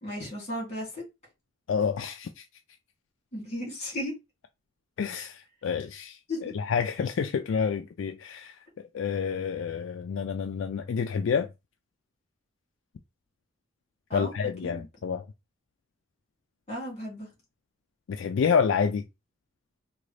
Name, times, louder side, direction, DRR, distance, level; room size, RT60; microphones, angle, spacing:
voice 1, 0.0-1.0 3.3-4.1 6.3-6.5 14.1-14.3 14.6-14.9 16.7-17.3, left 1 dB, 35° left, 2.3 m, -35 dB
voice 2, 1.7-2.4 5.0-8.6 8.9-11.5 14.1-15.2 18.1-19.0, left 6 dB, 70° left, 0.3 m, -28 dB
3.8 x 2.4 x 3.2 m
head